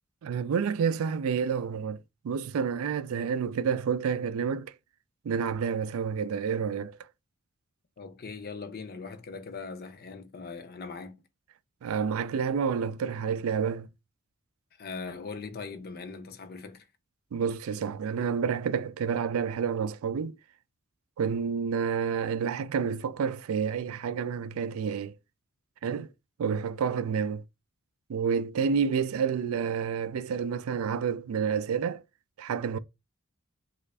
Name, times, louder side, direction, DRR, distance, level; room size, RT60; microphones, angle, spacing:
voice 1, 0.2-2.0 2.2-4.7 5.2-7.0 11.8-13.9 17.3-20.4 21.2-25.1 25.8-26.1 26.4-27.4 28.1-32.0 32.4-32.8, right 6 dB, 80° right, 0.3 m, -29 dB
voice 2, 8.0-11.1 14.8-16.9, left 4 dB, 50° left, 0.6 m, -40 dB
3.3 x 2.5 x 3.2 m
head